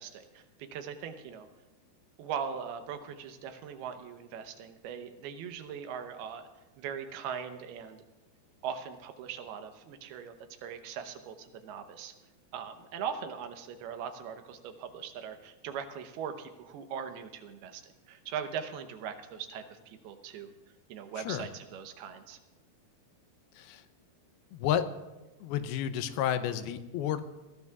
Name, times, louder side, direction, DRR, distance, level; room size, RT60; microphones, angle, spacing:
voice 1, 0.0-1.5 2.2-6.5 6.8-8.0 8.6-10.3 10.6-12.1 12.5-20.5 20.9-22.4, right 7 dB, 90° right, 7 dB, 2.9 m, -40 dB
voice 2, 21.2-21.5 23.6-23.8 24.5-24.9 25.4-27.2, left 10 dB, 85° left, 10 dB, 2.6 m, -31 dB
21.5 x 16.0 x 2.4 m, 1.1 s
omnidirectional pair, 4.4 m